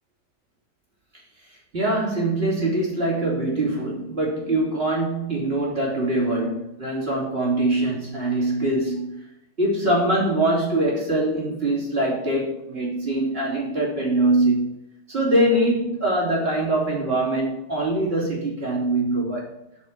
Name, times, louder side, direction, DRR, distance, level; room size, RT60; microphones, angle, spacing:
voice 1, 1.7-9.2 9.6-14.7 15.1-19.5, right 1 dB, 40° right, -3 dB, 3.5 m, -23 dB
7.3 x 6.6 x 8.1 m, 0.83 s
omnidirectional pair, 1.6 m